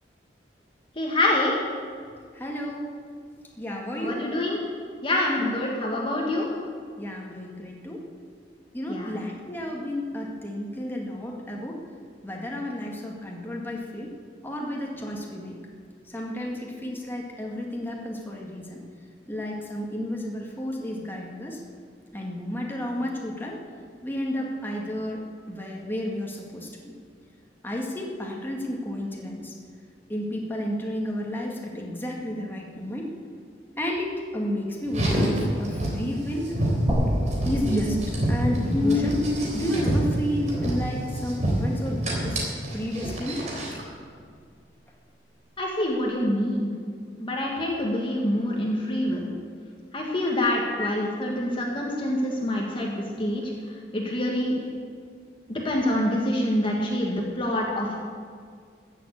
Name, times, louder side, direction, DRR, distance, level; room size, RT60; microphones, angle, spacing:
voice 1, 1.0-1.5 4.0-4.6 5.0-6.5 8.9-9.1 45.6-46.7 47.2-49.3 49.9-53.4 53.9-54.5 55.5-58.0, left 1 dB, 30° left, -2 dB, 1.8 m, -26 dB
voice 2, 2.3-2.9 3.6-4.2 5.4-5.5 7.0-8.0 8.7-11.8 12.2-14.1 14.4-15.5 16.1-18.8 19.3-21.6 22.1-23.6 24.0-26.9 27.6-29.5 30.1-33.1 33.8-36.5 37.4-38.0 38.3-39.2 39.5-42.4 42.7-43.5 50.8-50.9, left 1 dB, 10° left, -2 dB, 2.0 m, -32 dB
Car, 34.9-43.8, equal, 45° right, 3.7 m, -26 dB
sound 1, 36.9-40.9, equal, 25° right, 1.8 m, -30 dB
15.0 x 7.5 x 8.6 m, 2.1 s
head